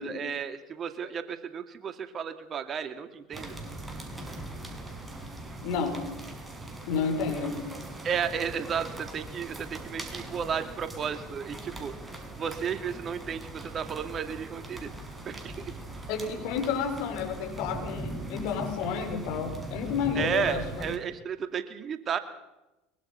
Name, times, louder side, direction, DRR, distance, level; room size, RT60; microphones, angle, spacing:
voice 1, 0.0-3.6 8.0-12.0 12.4-14.9 15.2-15.7 20.1-22.2, right 7 dB, 40° right, 9 dB, 2.4 m, -33 dB
sound 1, 3.3-21.0, right 1 dB, 10° right, 6.5 m, -40 dB
voice 2, 5.6-6.0 6.9-7.6 16.1-20.9, left 6 dB, 60° left, 4 dB, 6.2 m, -31 dB
23.5 x 23.5 x 5.8 m, 0.97 s
hypercardioid pair, 75°, 0 cm